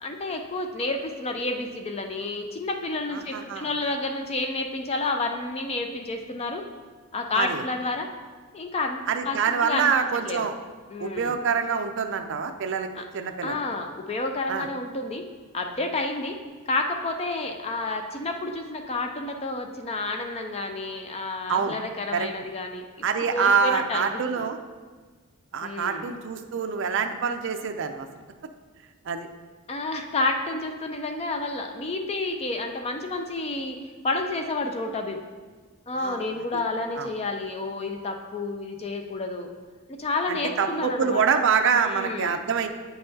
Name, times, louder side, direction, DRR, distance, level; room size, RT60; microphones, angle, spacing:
voice 1, 0.0-6.6 7.1-8.1 8.5-9.0 9.3-10.5 10.9-11.4 13.0-13.1 13.4-15.2 15.5-16.4 16.7-23.1 23.3-24.1 24.4-24.5 25.6-26.1 29.7-33.8 34.0-35.2 35.9-39.5 40.0-41.2 41.7-42.4, left 2 dB, 30° left, 4 dB, 0.4 m, -30 dB
voice 2, 3.1-3.7 7.3-7.6 9.1-10.5 11.0-12.9 13.1-13.6 14.5-14.7 21.5-21.8 22.1-22.3 23.0-24.6 25.5-28.1 29.1-29.3 36.0-36.3 37.0-37.1 40.3-42.7, right 6 dB, 60° right, 6 dB, 0.4 m, -25 dB
8.7 x 5.6 x 2.7 m, 1.4 s
head